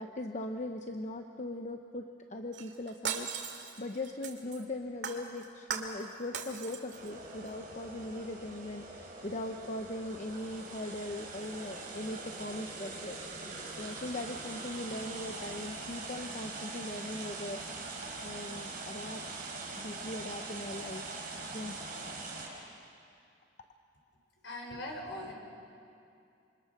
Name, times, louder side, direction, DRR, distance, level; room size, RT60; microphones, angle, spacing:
voice 1, 0.0-13.2 13.8-17.6 18.2-19.2 19.8-21.8, left 1 dB, 40° left, 5 dB, 0.9 m, -40 dB
Shatter, 2.5-4.6 5.0-6.0 6.3-7.1 7.5-7.6, right 6 dB, 75° right, 2.4 m, -39 dB
sound 1, 6.9-22.5, right 3 dB, 45° right, 5.4 m, -43 dB
voice 2, 24.4-25.3, left 1 dB, 85° left, 2 dB, 4.7 m, -40 dB
27.5 x 25.5 x 6.7 m, 2.5 s
head